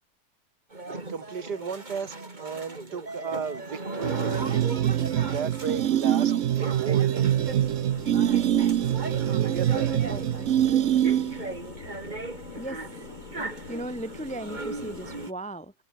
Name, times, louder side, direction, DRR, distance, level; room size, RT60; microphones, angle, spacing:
sound 1, 0.7-15.3, right 2 dB, 25° right, 2.7 m, -38 dB
voice 1, 0.9-4.4 5.1-7.3 9.4-9.9, right 6 dB, 85° right, 2.6 m, -35 dB
sound 2, 4.0-11.5, right 11 dB, 60° right, 0.9 m, -24 dB
sound 3, 7.4-15.3, left 5 dB, 55° left, 2.5 m, -44 dB
voice 2, 10.1-10.6 12.6-15.7, right 1 dB, 10° left, 0.5 m, -38 dB
omnidirectional pair, 1.7 m